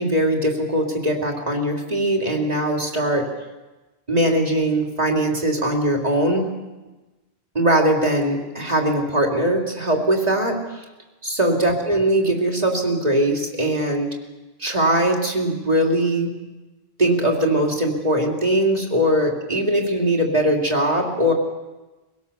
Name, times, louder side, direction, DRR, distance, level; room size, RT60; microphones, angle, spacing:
voice 1, 0.0-3.3 4.1-6.5 7.5-10.8 11.2-14.1 14.6-16.3 17.0-21.3, right 1 dB, 40° right, 0 dB, 3.0 m, -21 dB
23.0 x 17.5 x 7.0 m, 1.1 s
omnidirectional pair, 1.1 m